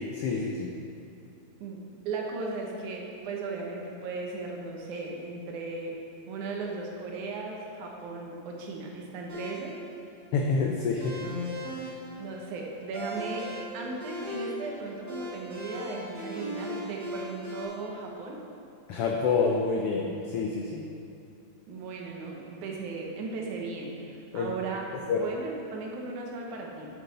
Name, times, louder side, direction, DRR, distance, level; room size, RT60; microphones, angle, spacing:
voice 1, 0.1-0.7 10.3-11.2 11.7-11.8 18.9-20.8 24.3-24.5 25.1-25.3, left 4 dB, 75° left, 0 dB, 1.3 m, -27 dB
voice 2, 2.1-5.9 6.3-9.8 11.8-13.5 13.7-18.4 21.7-26.9, right 3 dB, 85° right, -1 dB, 2.6 m, -37 dB
sound 1, 9.3-17.6, equal, 40° right, 2.7 m, -38 dB
9.5 x 7.8 x 4.2 m, 2.5 s
omnidirectional pair, 3.3 m